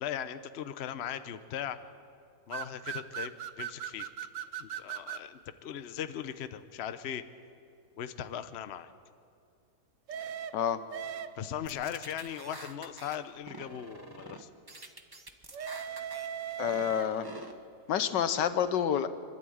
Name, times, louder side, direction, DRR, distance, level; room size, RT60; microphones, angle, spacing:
voice 1, 0.0-1.8 2.5-4.1 4.6-7.2 8.0-8.9 11.4-14.5, left 9 dB, 50° left, 11 dB, 0.8 m, -38 dB
sound 1, 2.5-5.3 10.1-11.6 15.5-17.4, right 9 dB, 60° right, 0.9 m, -39 dB
sound 2, 11.7-13.2 13.5-14.4 14.7-16.3 16.6-17.5, right 2 dB, 15° right, 0.8 m, -47 dB
voice 2, 16.6-17.3 17.9-19.1, left 9 dB, 80° left, 11 dB, 1.6 m, -28 dB
25.5 x 12.5 x 8.7 m, 2.3 s
omnidirectional pair, 1.9 m